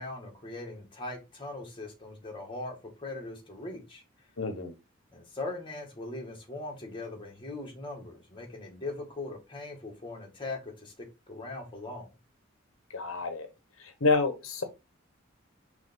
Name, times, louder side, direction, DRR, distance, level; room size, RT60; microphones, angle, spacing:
voice 1, 0.0-4.0 5.1-10.9 11.3-12.1, left 2 dB, 25° left, 2.1 m, -40 dB
voice 2, 4.4-4.7 12.9-13.5 14.0-14.6, left 3 dB, 85° left, 1.2 m, -28 dB
5.6 x 3.4 x 5.2 m
head